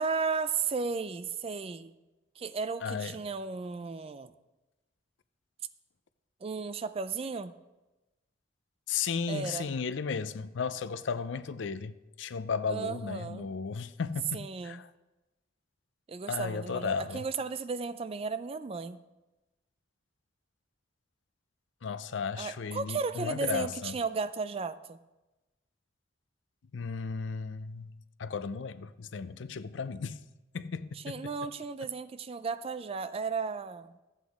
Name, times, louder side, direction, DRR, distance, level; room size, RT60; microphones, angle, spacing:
voice 1, 0.0-1.9 2.4-4.3 6.4-7.5 9.3-9.7 12.7-13.5 14.3-14.8 16.1-19.0 22.4-25.0 31.0-33.9, right 5 dB, 30° right, 0.4 m, -34 dB
voice 2, 2.8-3.2 8.9-14.9 16.3-17.3 21.8-24.0 26.7-30.2 30.5-31.3, left 5 dB, 75° left, 0.5 m, -35 dB
13.0 x 8.1 x 3.6 m
head